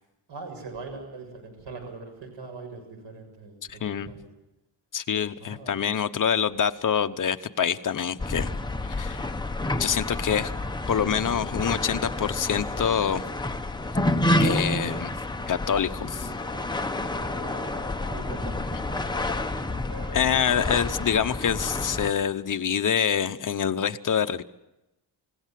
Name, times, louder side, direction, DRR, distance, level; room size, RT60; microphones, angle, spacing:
voice 1, 0.3-4.3 5.4-5.7 17.4-19.2, right 3 dB, 75° right, 4 dB, 7.1 m, -42 dB
voice 2, 3.7-4.1 4.9-8.5 8.9-9.2 9.8-10.5 10.9-13.2 14.4-15.1 15.5-16.3 20.1-24.4, left 8 dB, 45° left, 9 dB, 0.9 m, -26 dB
sound 1, 8.2-22.1, left 1 dB, 10° left, 0.9 m, -29 dB
Wind instrument woodwind instrument, 15.9-18.6 19.1-22.3, right 1 dB, 35° right, 4.7 m, -47 dB
29.0 x 17.0 x 7.6 m, 0.95 s
wide cardioid pair, 160°, 44 cm